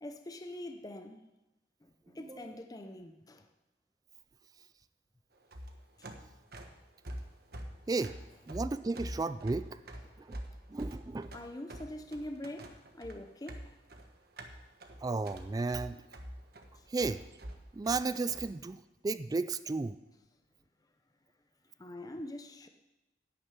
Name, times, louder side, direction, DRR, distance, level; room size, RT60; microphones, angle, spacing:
voice 1, 0.0-1.3 1.8-3.5 6.0-6.2 11.3-13.7 16.7-16.9 21.8-22.7, left 1 dB, 20° left, 0.6 m, -44 dB
voice 2, 2.1-2.5 7.9-8.2 8.5-9.8 10.2-10.4 10.7-11.3 15.0-16.0 16.9-17.2 17.7-20.0, right 3 dB, 20° right, 0.3 m, -34 dB
sound 1, 5.4-18.5, equal, 60° right, 1.3 m, -46 dB
11.0 x 6.7 x 8.9 m
head